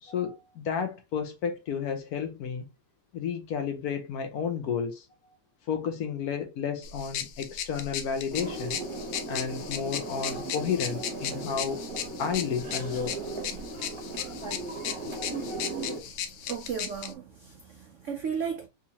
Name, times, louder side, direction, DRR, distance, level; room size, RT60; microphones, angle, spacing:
voice 1, 0.0-2.7 3.1-5.0 5.7-8.8 9.3-11.9 12.2-13.1, left 7 dB, 65° left, 1.0 m, -32 dB
sound 1, 6.8-17.1, left 9 dB, 85° left, 1.3 m, -37 dB
sound 2, 8.3-16.0, right 2 dB, 25° right, 0.7 m, -37 dB
voice 2, 16.4-18.7, right 6 dB, 75° right, 0.7 m, -35 dB
3.7 x 2.9 x 2.8 m
omnidirectional pair, 1.9 m